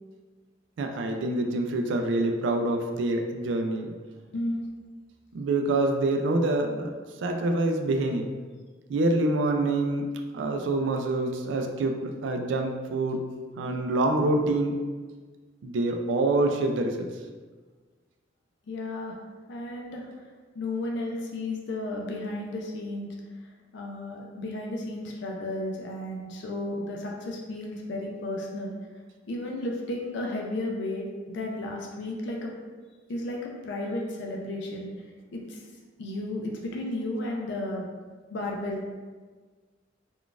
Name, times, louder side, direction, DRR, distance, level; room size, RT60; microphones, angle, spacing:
voice 1, 0.8-3.9 5.3-6.9 7.2-8.3 8.9-10.1 10.3-13.2 13.6-14.8 15.6-17.1, right 2 dB, 70° right, 4 dB, 0.3 m, -26 dB
voice 2, 4.3-4.6 13.6-13.9 18.7-19.2 19.5-20.1 20.6-23.1 23.7-28.7 29.3-32.5 33.1-34.9 35.3-35.6 36.0-37.9 38.3-38.8, left 1 dB, 65° left, -1 dB, 0.4 m, -33 dB
3.8 x 2.3 x 2.4 m, 1.4 s
head